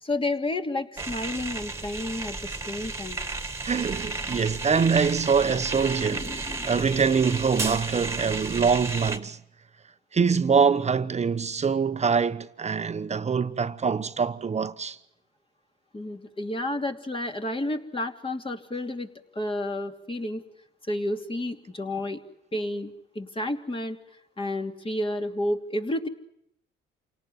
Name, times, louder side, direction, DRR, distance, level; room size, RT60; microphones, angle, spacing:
voice 1, 0.0-3.2 5.9-6.8 15.9-19.1 19.3-20.4 20.9-22.2 22.5-24.0 24.4-26.1, left 1 dB, 25° left, 3.0 m, -31 dB
sound 1, 1.0-9.2, right 3 dB, 15° right, 2.1 m, -33 dB
voice 2, 3.6-9.4 10.1-15.0, right 6 dB, 35° right, 1.0 m, -24 dB
28.5 x 18.5 x 9.4 m
cardioid pair, 90°, 20 cm